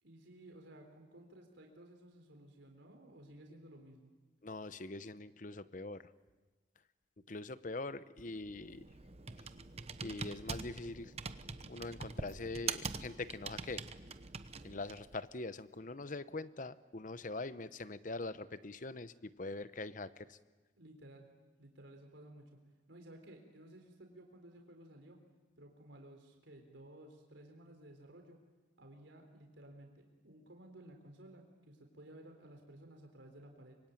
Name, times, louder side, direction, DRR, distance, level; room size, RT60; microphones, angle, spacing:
voice 1, 0.0-4.1 20.8-21.3 21.6-22.6 22.9-25.2 25.6-28.4 28.8-33.8, right 1 dB, 80° right, 3 dB, 3.9 m, -56 dB
voice 2, 4.4-6.1 7.3-8.8 10.0-11.1 11.7-13.8 14.6-20.4, left 2 dB, 45° left, 14 dB, 0.9 m, -43 dB
Computer keyboard, 8.2-15.2, right 5 dB, 35° right, 0.9 m, -44 dB
25.0 x 23.5 x 9.2 m, 1.2 s
head